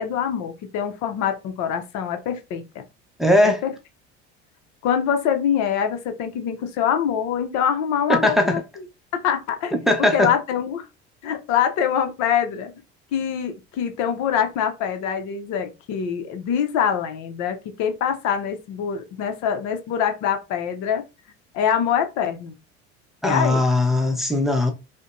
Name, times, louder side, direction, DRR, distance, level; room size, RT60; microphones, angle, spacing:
voice 1, 0.0-2.8 3.4-3.7 4.8-8.6 9.1-9.7 10.0-10.9 11.2-12.7 13.1-21.0 21.5-22.5 23.2-23.6, left 8 dB, 60° left, 0.7 m, -24 dB
voice 2, 3.2-3.6 8.1-8.6 9.7-10.3 23.2-24.7, left 1 dB, ahead, 0.7 m, -19 dB
5.0 x 2.1 x 2.5 m
hypercardioid pair, 85°, 31 cm